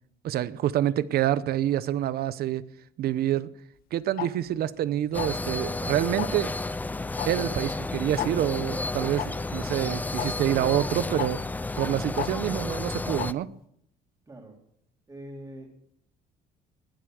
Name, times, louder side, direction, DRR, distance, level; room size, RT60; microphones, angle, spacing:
voice 1, 0.2-2.6 3.0-3.5 3.9-6.5 7.2-11.4 11.8-13.5, right 12 dB, 65° right, 0.8 m, -27 dB
Tick-tock, 4.2-4.3 5.2-5.5 6.2-6.4 7.2-7.3 7.6-7.7 8.2-8.3 9.2-9.3 10.2-10.3 11.2-11.3 12.2-12.3 13.2-13.3, left 13 dB, 60° left, 0.9 m, -31 dB
sound 1, 5.1-13.3, left 2 dB, 10° left, 0.4 m, -32 dB
voice 2, 14.3-14.6 15.1-15.7, right 1 dB, 20° right, 3.4 m, -43 dB
20.5 x 7.8 x 6.4 m
cardioid pair, 110°, 17 cm